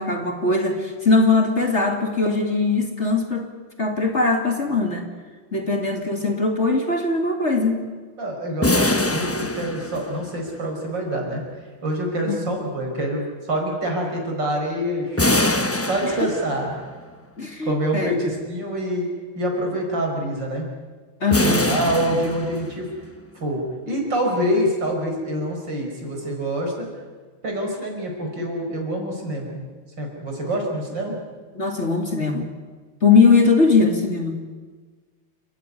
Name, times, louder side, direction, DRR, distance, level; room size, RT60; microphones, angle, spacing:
voice 1, 0.0-3.5 3.8-5.1 5.5-7.8 12.2-12.5 16.0-16.3 17.4-18.2 21.2-21.8 31.5-32.5 33.0-34.4, left 3 dB, 35° left, 3 dB, 2.6 m, -20 dB
voice 2, 8.2-11.4 11.8-16.8 17.6-19.1 19.4-20.7 21.4-22.9 23.3-26.9 27.4-29.6 30.0-31.2, equal, 60° right, 1 dB, 6.0 m, -26 dB
sound 1, 8.6-10.5 15.2-16.8 21.3-23.0, left 2 dB, 15° left, 0.5 m, -23 dB
30.0 x 15.5 x 9.9 m, 1.4 s
omnidirectional pair, 2.2 m